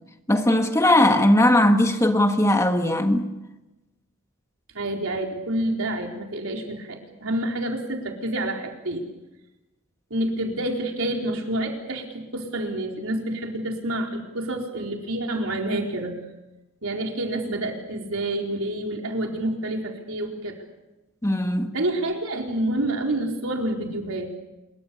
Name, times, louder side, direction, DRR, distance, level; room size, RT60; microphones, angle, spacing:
voice 1, 0.3-3.3 21.2-21.7, left 1 dB, 15° left, 1.5 m, -19 dB
voice 2, 4.7-9.1 10.1-16.2 16.8-20.5 21.7-24.3, right 1 dB, 75° right, 4.3 m, -28 dB
26.5 x 23.0 x 7.0 m
head